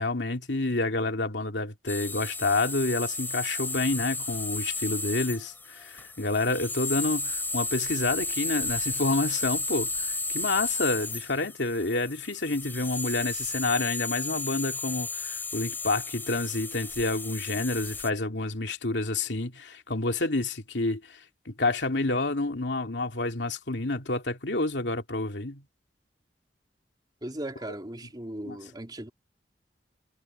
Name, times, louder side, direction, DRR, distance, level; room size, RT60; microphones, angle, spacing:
voice 1, 0.0-21.2 21.5-25.6 28.5-28.6, left 2 dB, 85° left, 2.5 m, -29 dB
sound 1, 1.9-18.1, left 2 dB, 10° left, 3.0 m, -33 dB
voice 2, 27.2-29.1, right 1 dB, 25° right, 3.4 m, -37 dB
head